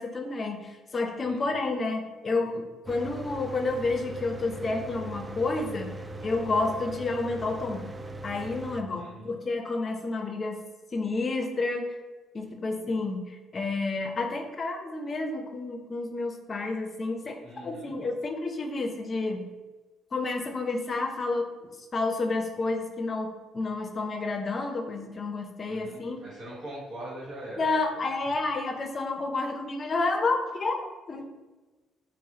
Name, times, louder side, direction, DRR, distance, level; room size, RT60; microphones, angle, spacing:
voice 1, 0.0-6.0 6.2-7.9 8.2-10.6 10.9-11.9 12.3-17.4 17.6-19.5 20.1-21.5 21.9-26.2 27.6-31.2, left 3 dB, 40° left, 4 dB, 0.5 m, -30 dB
Mechanical fan, 2.9-8.8, right 1 dB, 25° right, 0.4 m, -40 dB
voice 2, 8.9-9.3 17.4-17.9 25.6-28.0, right 1 dB, 65° right, -4 dB, 1.3 m, -42 dB
5.4 x 2.0 x 2.8 m, 1.2 s
hypercardioid pair, 55°, 0 cm